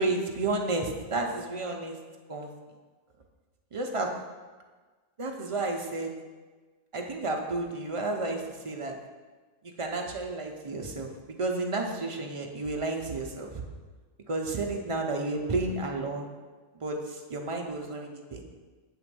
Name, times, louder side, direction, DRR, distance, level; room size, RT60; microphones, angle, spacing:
voice 1, 0.0-2.0 2.3-2.5 3.7-4.1 5.2-6.1 6.9-9.0 9.6-13.6 14.3-16.3 16.7-18.4, right 2 dB, 50° right, 1 dB, 0.3 m, -31 dB
7.9 x 3.0 x 6.0 m, 1.4 s
omnidirectional pair, 1.4 m